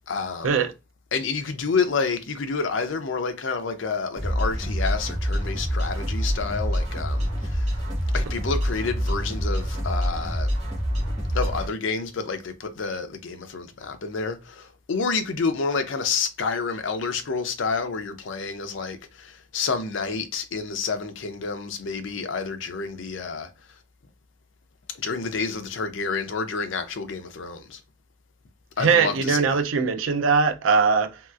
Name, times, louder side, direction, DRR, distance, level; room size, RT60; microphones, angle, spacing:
voice 1, 0.1-0.5 1.1-7.7 8.1-10.5 11.3-23.5 24.9-27.8 28.8-29.6, left 4 dB, 70° left, 0.5 m, -29 dB
sound 1, 4.1-11.7, equal, 35° right, 1.3 m, -26 dB
voice 2, 28.8-31.2, right 5 dB, 90° right, 0.5 m, -21 dB
3.2 x 2.8 x 2.4 m
head